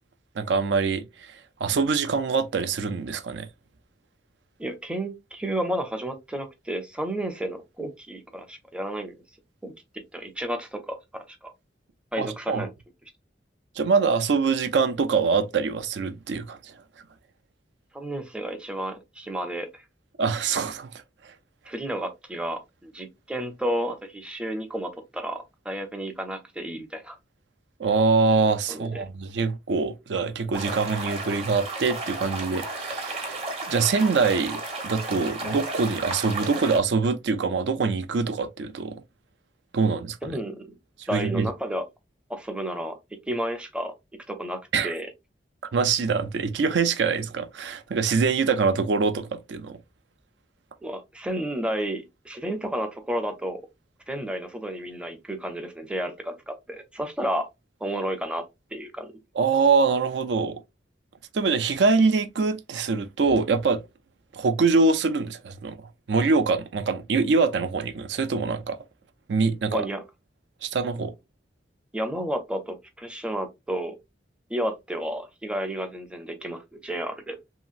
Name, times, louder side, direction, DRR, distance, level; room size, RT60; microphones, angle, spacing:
voice 1, 0.4-3.5 12.2-12.7 13.8-16.7 20.2-20.9 21.2-21.3 27.8-38.9 39.7-40.2 41.1-41.5 44.7-44.9 45.7-49.8 59.4-60.6 61.3-63.8 64.3-68.8 69.3-69.9 70.6-71.1, right 4 dB, 80° right, 0.4 m, -24 dB
voice 2, 4.6-9.2 9.6-9.7 10.1-11.5 12.1-12.7 17.9-19.8 21.7-27.2 28.7-29.0 40.2-40.7 41.1-41.8 42.3-43.0 43.3-43.9 44.3-45.1 50.8-53.6 54.1-57.5 57.8-58.4 58.7-59.1 69.7-70.0 71.9-74.0 74.5-77.4, right 1 dB, 5° right, 0.5 m, -31 dB
sound 1, 30.5-36.8, right 2 dB, 35° right, 0.8 m, -33 dB
2.8 x 2.8 x 2.4 m
head